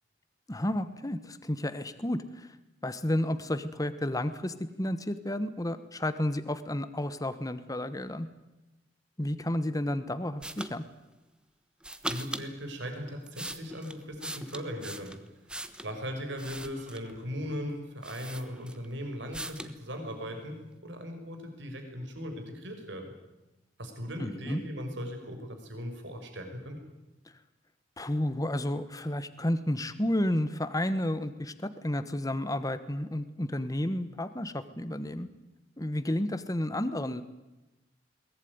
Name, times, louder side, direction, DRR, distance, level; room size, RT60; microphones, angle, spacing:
voice 1, 0.5-2.6 2.8-8.3 9.2-10.8 24.2-24.6 28.0-35.3 35.8-37.2, left 1 dB, 20° left, 12 dB, 1.2 m, -31 dB
sound 1, 10.4-10.7 11.8-12.5 13.1-15.9 16.4-17.2 17.7-17.8 18.0-18.9 19.3-19.8, right 1 dB, 5° right, 1.2 m, -40 dB
voice 2, 12.0-15.2 15.8-20.6 20.8-23.1 23.8-26.8, equal, 70° right, 4 dB, 5.6 m, -38 dB
22.5 x 19.0 x 9.6 m, 1.0 s
head